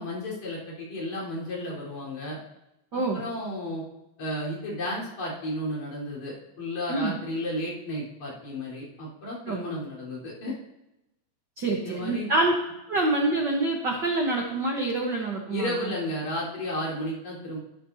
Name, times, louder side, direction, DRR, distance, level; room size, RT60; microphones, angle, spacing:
voice 1, 0.0-2.4 2.9-3.8 4.2-10.5 11.8-12.3 15.5-17.6, left 1 dB, 60° left, -6 dB, 5.6 m, -33 dB
voice 2, 2.9-3.2 6.9-7.2 9.4-9.6 11.6-12.5 12.9-15.7, right 2 dB, 60° right, 0 dB, 1.1 m, -26 dB
12.5 x 12.5 x 2.8 m, 0.91 s
omnidirectional pair, 3.7 m